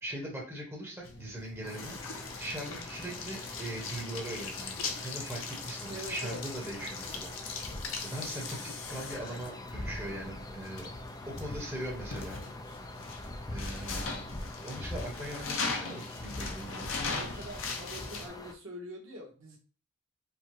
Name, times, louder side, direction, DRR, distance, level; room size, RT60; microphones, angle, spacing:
voice 1, 0.0-7.3 8.0-10.9 11.4-12.4 13.5-14.3 14.6-16.9, right 1 dB, 10° right, -3 dB, 1.1 m, -40 dB
sound 1, 1.0-18.3, left 4 dB, 85° left, 0.7 m, -40 dB
sound 2, 1.6-18.5, left 1 dB, 20° left, 0.4 m, -44 dB
voice 2, 5.9-6.4 17.0-19.6, equal, 75° right, 0 dB, 1.3 m, -44 dB
4.7 x 2.3 x 3.1 m, 0.37 s
head